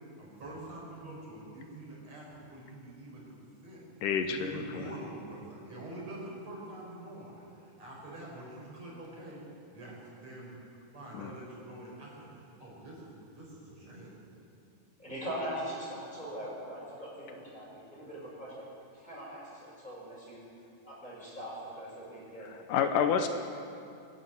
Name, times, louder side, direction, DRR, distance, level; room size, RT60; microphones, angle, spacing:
voice 1, 0.2-3.8 4.3-9.4 9.7-10.5 10.9-14.1, right 1 dB, 50° right, -4 dB, 6.3 m, -45 dB
voice 2, 4.0-4.8 11.1-11.3 22.4-23.3, left 7 dB, 80° left, 7 dB, 2.5 m, -29 dB
voice 3, 15.0-18.6 18.9-20.4 20.8-22.5 23.1-23.3, equal, 10° left, -6 dB, 6.8 m, -41 dB
23.5 x 12.0 x 9.5 m, 2.6 s
omnidirectional pair, 3.8 m